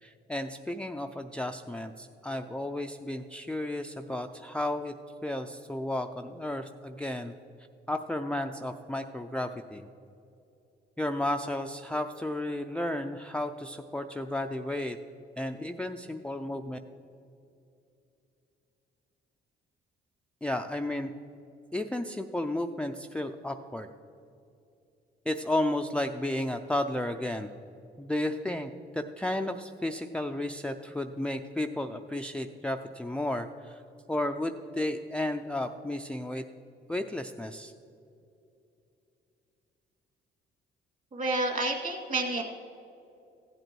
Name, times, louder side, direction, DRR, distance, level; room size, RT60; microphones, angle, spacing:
voice 1, 0.0-4.9 5.2-7.3 7.9-9.9 11.0-15.0 15.4-16.8 20.4-21.1 21.7-23.9 25.3-27.5 28.0-33.8 34.1-36.4 36.9-37.7, left 1 dB, 5° left, 5 dB, 0.4 m, -33 dB
voice 2, 41.1-42.4, right 2 dB, 40° right, 1 dB, 2.3 m, -29 dB
15.0 x 7.9 x 4.6 m, 2.8 s
cardioid pair, 90°, 20 cm